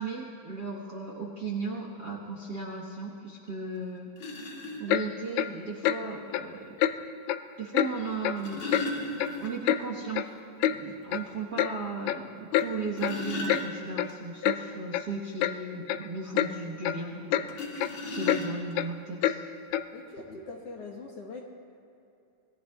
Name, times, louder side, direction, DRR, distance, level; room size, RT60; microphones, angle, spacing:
voice 1, 0.0-4.1 4.8-6.8 7.6-9.1 9.4-10.3 10.7-17.6 18.1-19.4, right 3 dB, 50° right, -1 dB, 1.3 m, -36 dB
sound 1, 3.5-3.6 4.2-4.8 6.2-6.3 8.1-9.8 10.2-10.3 10.7-10.8 11.3-11.4 12.6-14.1 17.5-18.8 19.7-19.8 20.2-20.4, left 2 dB, 40° left, 2.6 m, -36 dB
Clock, 4.9-5.1 5.4-5.5 5.8-6.0 6.3-6.5 6.8-6.9 7.3-7.4 7.7-7.9 8.2-8.4 8.7-8.9 9.2-9.8 10.1-10.2 10.6-10.8 11.1-11.3 11.6-11.7 12.1-12.2 12.5-12.7 13.0-13.2 13.5-13.6 14.0-14.1 14.4-14.6 14.9-15.0 15.4-15.5 15.9-16.0 16.4-16.5 16.8-17.0 17.3-17.5 17.8-17.9 18.3-18.4 18.8-18.9 19.2-19.4 19.7-19.9, left 11 dB, 85° left, 1.6 m, -26 dB
voice 2, 19.9-21.5, left 3 dB, 60° left, 0 dB, 2.0 m, -42 dB
26.5 x 21.0 x 2.3 m, 2.7 s
omnidirectional pair, 3.7 m